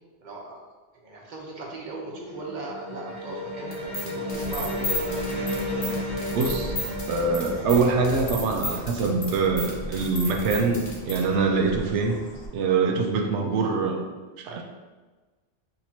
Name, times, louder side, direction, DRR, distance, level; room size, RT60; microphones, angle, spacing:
voice 1, 0.2-0.6 1.0-5.2, right 2 dB, 45° right, -2 dB, 0.9 m, -38 dB
sound 1, 2.0-9.5, left 1 dB, 5° right, 0.7 m, -33 dB
sound 2, 3.7-11.2, left 1 dB, 80° left, 1.3 m, -33 dB
Bird, 4.3-12.5, left 1 dB, 35° left, 0.8 m, -40 dB
voice 2, 6.3-6.8 7.1-12.2 12.5-14.0 14.4-14.6, right 4 dB, 85° right, 3 dB, 0.9 m, -24 dB
4.3 x 2.9 x 4.2 m, 1.3 s
omnidirectional pair, 1.1 m